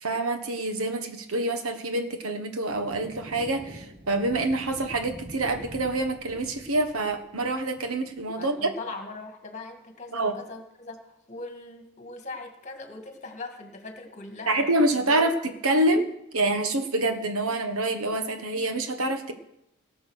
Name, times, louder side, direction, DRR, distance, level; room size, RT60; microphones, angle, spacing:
voice 1, 0.0-8.7 10.1-10.4 14.5-19.3, right 2 dB, 90° right, 7 dB, 1.4 m, -26 dB
sound 1, 2.7-8.3, right 1 dB, 25° right, 1.0 m, -46 dB
voice 2, 8.4-14.7 15.1-15.3, left 3 dB, 35° left, 4 dB, 2.0 m, -40 dB
18.0 x 7.0 x 6.4 m, 0.82 s
head